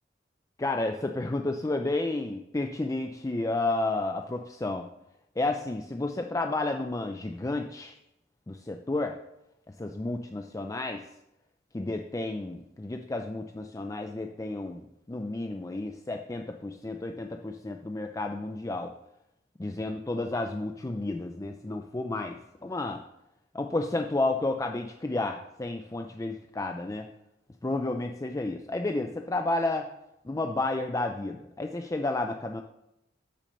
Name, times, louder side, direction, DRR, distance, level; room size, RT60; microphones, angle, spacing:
voice 1, 0.6-4.9 5.4-8.0 8.5-9.2 9.8-11.0 11.7-14.8 15.1-18.9 19.6-23.0 23.5-27.1 27.6-29.9 30.2-32.6, left 2 dB, 20° left, 4 dB, 0.4 m, -31 dB
8.4 x 6.1 x 6.6 m, 0.86 s
head